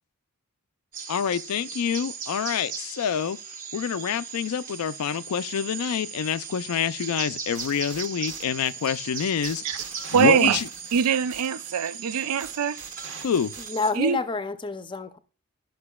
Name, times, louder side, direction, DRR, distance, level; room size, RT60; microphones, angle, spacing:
sound 1, 0.9-13.9, right 6 dB, 40° right, 1.0 m, -38 dB
voice 1, 1.1-3.4 3.7-10.7 13.2-13.5, left 7 dB, 80° left, 0.4 m, -27 dB
sound 2, 7.5-13.7, right 5 dB, 60° right, 1.3 m, -45 dB
voice 2, 10.1-10.6 10.9-12.8 14.0-14.2, right 8 dB, 90° right, 0.4 m, -23 dB
voice 3, 13.6-15.2, left 3 dB, 20° left, 0.5 m, -29 dB
11.5 x 6.0 x 2.3 m
head